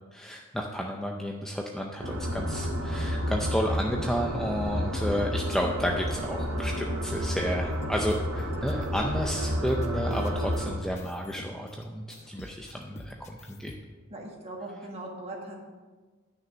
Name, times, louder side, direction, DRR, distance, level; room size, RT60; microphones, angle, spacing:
voice 1, 0.1-13.7, equal, ahead, 0 dB, 0.5 m, -32 dB
sound 1, 2.0-10.7, equal, 75° right, 1.8 m, -30 dB
sound 2, 7.7-11.8 12.1-13.7, left 2 dB, 30° left, 0.8 m, -47 dB
voice 2, 14.1-15.6, right 1 dB, 30° right, 0 dB, 1.7 m, -39 dB
10.5 x 6.1 x 6.2 m, 1.3 s
head